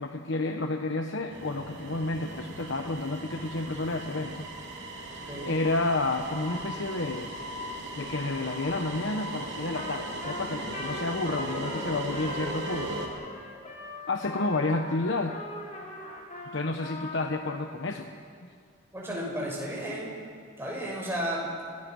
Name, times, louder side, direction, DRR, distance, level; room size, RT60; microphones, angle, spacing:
voice 1, 0.0-4.5 5.4-7.3 8.0-13.0 14.1-15.4 16.5-18.1 19.1-19.2, left 2 dB, 65° left, 5 dB, 1.1 m, -30 dB
sound 1, 1.3-13.1, right 1 dB, 60° right, 3.9 m, -38 dB
Trumpet, 9.7-9.9 10.2-17.6, left 2 dB, 40° left, 5.0 m, -41 dB
voice 2, 18.9-20.1 20.6-21.6, equal, 10° right, -4 dB, 6.8 m, -33 dB
26.5 x 19.0 x 6.3 m, 2.3 s
head